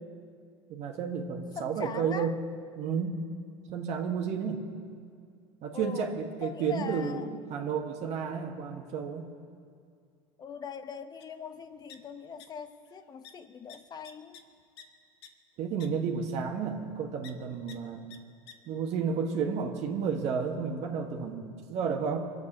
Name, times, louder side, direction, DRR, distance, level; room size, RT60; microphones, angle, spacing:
voice 1, 0.7-2.3 2.8-3.2 3.7-4.7 5.6-9.2 15.6-18.1 18.7-22.2, right 6 dB, 55° right, 2 dB, 1.6 m, -32 dB
voice 2, 1.6-2.3 5.7-6.1 6.4-7.3 10.4-14.4, left 6 dB, 30° left, 11 dB, 0.9 m, -41 dB
sound 1, 11.2-11.3 11.5-12.5 12.7-13.0 13.2-13.3 13.7-14.8 15.2-15.3 15.8-15.9 17.2-17.3 17.7-17.8 18.1-18.2 18.5-18.6, left 7 dB, 90° left, 1.2 m, -50 dB
23.5 x 8.1 x 6.6 m, 2.2 s
supercardioid pair, 110°, 13 cm